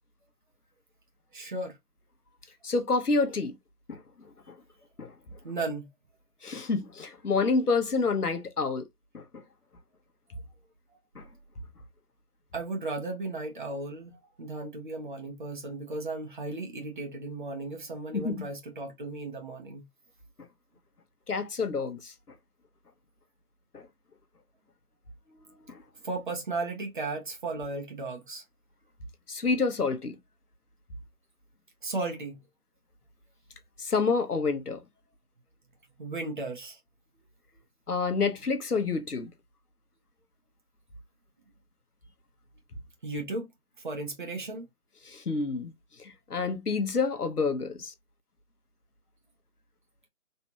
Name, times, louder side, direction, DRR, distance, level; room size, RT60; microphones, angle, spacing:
voice 1, 1.3-1.8 5.4-5.9 12.5-19.8 26.0-28.4 31.8-32.4 36.0-36.8 43.0-43.5 43.8-44.7, right 2 dB, 35° right, 1.0 m, -35 dB
voice 2, 2.6-3.6 3.9-4.0 4.5-4.6 5.0-5.1 6.4-8.8 9.1-9.4 11.1-11.2 18.1-18.4 20.4-20.5 21.3-22.1 23.7-23.9 25.7-25.8 29.3-30.2 33.8-34.8 37.9-39.3 45.0-45.7 46.0-47.9, left 4 dB, 85° left, 1.1 m, -28 dB
3.3 x 3.1 x 2.8 m
figure-of-eight pair, 160°, 45 cm